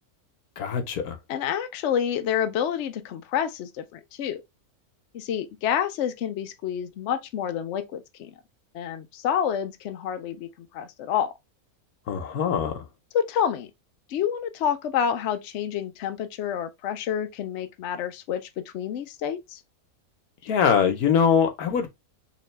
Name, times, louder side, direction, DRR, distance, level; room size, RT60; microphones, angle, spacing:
voice 1, 0.6-1.1 12.1-12.7 20.5-21.9, left 7 dB, 85° left, 1.4 m, -22 dB
voice 2, 1.3-4.4 5.1-8.3 8.7-10.5 10.7-11.3 13.1-13.7 14.1-18.4 18.7-19.6, left 8 dB, 65° left, 0.8 m, -28 dB
3.7 x 3.0 x 3.2 m
omnidirectional pair, 1.5 m